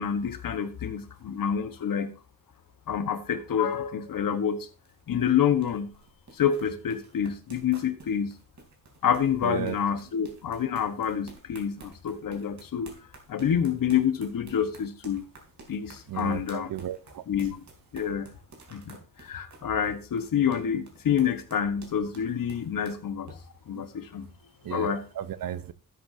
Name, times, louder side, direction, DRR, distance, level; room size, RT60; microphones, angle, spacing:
voice 1, 0.0-2.1 2.9-4.7 5.1-5.9 6.3-8.3 9.0-12.9 13.3-15.2 15.7-16.7 17.3-17.6 17.9-18.3 18.7-23.4 23.7-24.3 24.7-25.0, left 8 dB, 75° left, 10 dB, 1.5 m, -28 dB
sound 1, 4.3-23.4, right 3 dB, 60° right, 3.5 m, -51 dB
voice 2, 9.4-9.8 16.1-17.2 23.7-23.9 24.6-25.7, right 10 dB, 80° right, 15 dB, 0.9 m, -34 dB
12.5 x 8.4 x 2.8 m, 0.34 s
cardioid pair, 85°, 33 cm